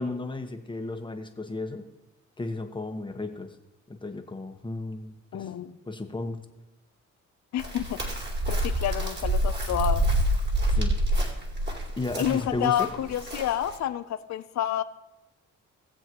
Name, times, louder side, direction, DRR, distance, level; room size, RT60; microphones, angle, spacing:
voice 1, 0.0-1.8 2.4-3.5 3.9-5.5 5.9-6.4 10.7-11.0 12.0-12.9, left 2 dB, 15° left, 5 dB, 1.3 m, -34 dB
voice 2, 5.3-5.7 7.5-8.0 8.5-10.1 12.2-14.8, left 11 dB, 65° left, 12 dB, 0.7 m, -29 dB
Chirp tweet, 7.6-13.8, right 1 dB, 35° right, 2.9 m, -27 dB
19.0 x 7.7 x 3.1 m, 0.94 s
cardioid pair, 90°, 30 cm